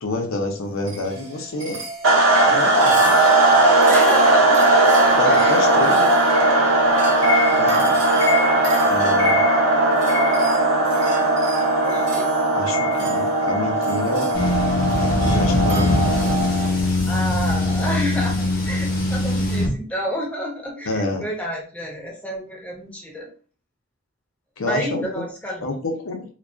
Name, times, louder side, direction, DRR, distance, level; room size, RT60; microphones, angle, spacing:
voice 1, 0.0-1.8 2.4-3.2 5.2-6.1 7.6-8.0 8.8-9.5 12.5-14.3 15.0-16.3 20.9-21.3 24.6-25.2 25.6-26.3, left 2 dB, 75° left, 3 dB, 0.6 m, -27 dB
sound 1, 0.9-16.5, equal, 60° right, 1.0 m, -30 dB
sound 2, 2.0-16.8, right 2 dB, 85° right, 0.7 m, -18 dB
voice 2, 3.9-6.0 11.8-12.3 17.0-23.3 24.7-25.7, equal, 5° left, -2 dB, 0.6 m, -30 dB
sound 3, 14.3-19.7, left 1 dB, 45° left, 0.7 m, -21 dB
2.3 x 2.2 x 2.4 m, 0.38 s
head